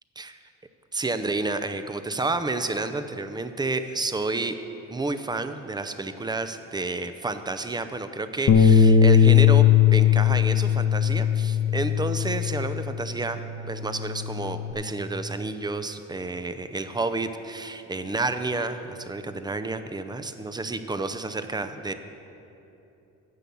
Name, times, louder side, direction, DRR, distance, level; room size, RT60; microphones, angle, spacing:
voice 1, 0.9-4.6 4.9-21.9, right 3 dB, 15° right, 10 dB, 0.6 m, -30 dB
Bass guitar, 8.5-12.9 13.3-14.7, left 8 dB, 50° left, 0.8 m, -19 dB
9.9 x 7.1 x 7.0 m, 2.9 s
cardioid pair, 90°, 30 cm